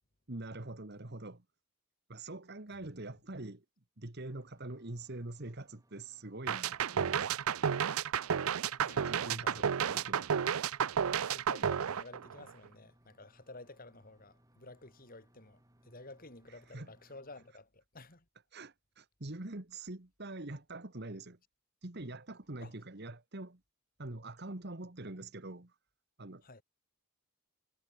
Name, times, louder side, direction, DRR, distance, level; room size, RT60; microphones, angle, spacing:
voice 1, 0.3-1.4 2.1-3.6 4.0-7.3 9.0-10.3 16.7-16.9 18.5-21.4 21.8-23.6 24.0-25.7 26.2-26.4, right 2 dB, 50° right, 1.7 m, -44 dB
sound 1, 4.3-17.5, right 1 dB, 15° right, 3.0 m, -68 dB
sound 2, 6.5-12.7, right 7 dB, 80° right, 0.5 m, -32 dB
voice 2, 8.8-10.1 11.3-18.2 22.6-22.7 26.4-26.6, left 2 dB, 40° left, 3.2 m, -52 dB
head